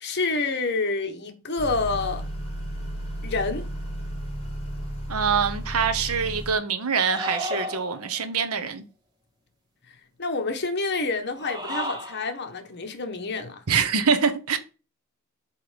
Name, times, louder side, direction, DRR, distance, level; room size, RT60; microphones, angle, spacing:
voice 1, 0.0-2.2 3.2-3.7 10.2-13.6, left 3 dB, 50° left, 1.2 m, -28 dB
Motor vehicle (road) / Accelerating revving vroom, 1.6-6.5, equal, 30° left, 2.9 m, -33 dB
voice 2, 5.1-8.8 13.7-14.6, right 6 dB, 85° right, 1.0 m, -24 dB
sound 1, 7.1-8.2 11.3-12.3, equal, 20° right, 1.5 m, -32 dB
8.0 x 3.2 x 5.1 m
head